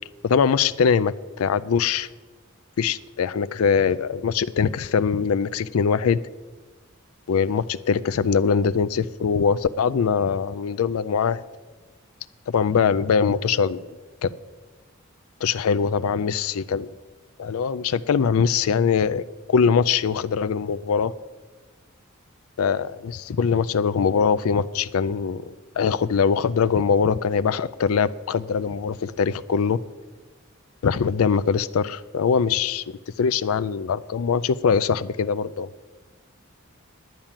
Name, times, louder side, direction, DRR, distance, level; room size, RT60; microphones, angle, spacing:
voice 1, 0.2-2.1 2.8-6.2 7.3-11.4 12.5-13.9 14.2-14.3 15.4-16.9 17.4-21.1 22.6-29.8 30.8-32.8 33.2-35.7, left 6 dB, 85° left, 0.4 m, -22 dB
10.5 x 8.7 x 7.3 m
head